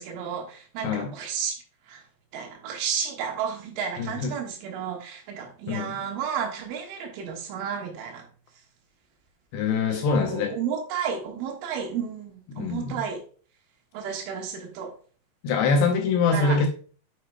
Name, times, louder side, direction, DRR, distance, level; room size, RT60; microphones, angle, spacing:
voice 1, 0.0-1.6 1.9-2.0 2.3-8.2 10.2-13.2 13.9-14.9 16.3-16.6, right 7 dB, 85° right, 1 dB, 3.9 m, -32 dB
voice 2, 4.0-4.3 5.7-6.0 9.5-10.6 12.5-13.0 15.4-16.7, left 4 dB, 80° left, 3 dB, 2.6 m, -24 dB
7.6 x 6.5 x 2.2 m, 0.41 s
omnidirectional pair, 5.5 m